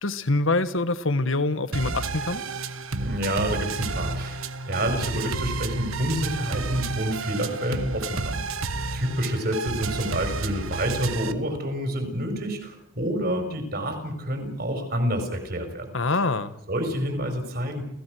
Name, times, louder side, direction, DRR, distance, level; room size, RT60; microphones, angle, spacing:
voice 1, 0.0-2.4 15.9-16.6, left 2 dB, 75° left, 13 dB, 1.5 m, -25 dB
sound 1, 1.7-11.3, right 3 dB, 85° right, 1.3 m, -31 dB
voice 2, 3.0-8.4 8.9-15.9 16.7-17.8, equal, 50° right, 6 dB, 5.0 m, -28 dB
29.0 x 16.5 x 6.4 m, 0.75 s
head